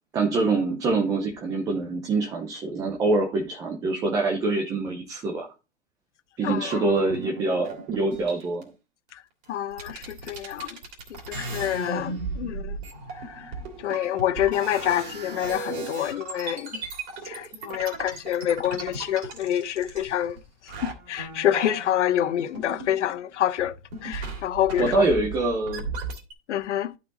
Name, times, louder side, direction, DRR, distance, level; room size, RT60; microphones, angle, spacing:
voice 1, 0.1-5.5 6.4-8.7 24.8-25.8, right 3 dB, 10° right, 0.7 m, -25 dB
voice 2, 6.4-6.8 9.5-10.8 11.3-12.8 13.4-13.5 13.8-16.7 17.2-20.4 20.8-23.7 24.0-25.0 26.5-26.9, left 11 dB, 70° left, 1.0 m, -27 dB
sound 1, 6.6-8.6 9.4-9.5 9.7-20.4 20.7-23.3 23.6-26.3, right 4 dB, 30° right, 2.7 m, -37 dB
11.5 x 4.8 x 3.8 m
hypercardioid pair, 165°, 36 cm